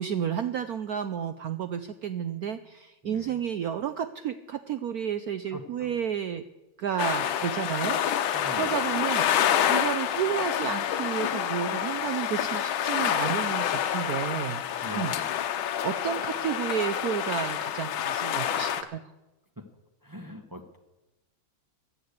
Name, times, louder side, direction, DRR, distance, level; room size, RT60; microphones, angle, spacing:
voice 1, 0.0-6.4 6.8-14.6 15.0-15.1 15.6-19.0, right 8 dB, 90° right, 11 dB, 0.8 m, -31 dB
voice 2, 3.0-3.4 5.5-6.0 8.3-8.8 14.8-15.4 19.6-19.7 20.0-20.8, equal, 20° right, 5 dB, 0.6 m, -42 dB
sound 1, 7.0-18.8, left 10 dB, 70° left, 1.6 m, -28 dB
15.5 x 9.8 x 8.1 m, 1.0 s
omnidirectional pair, 2.4 m